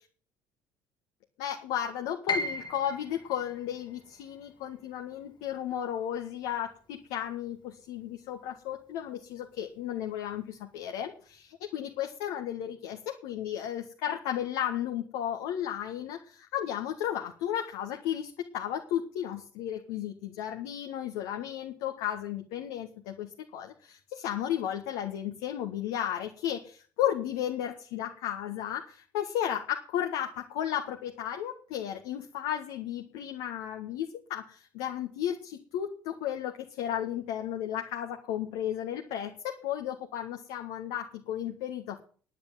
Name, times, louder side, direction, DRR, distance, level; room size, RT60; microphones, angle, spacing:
voice 1, 1.4-42.0, left 10 dB, 65° left, 3 dB, 1.6 m, -34 dB
Piano, 2.3-8.2 8.5-9.7 10.1-10.2 10.9-11.2, left 2 dB, 40° left, 2.7 m, -39 dB
10.5 x 8.3 x 9.1 m, 0.42 s
figure-of-eight pair, 55°, 12 cm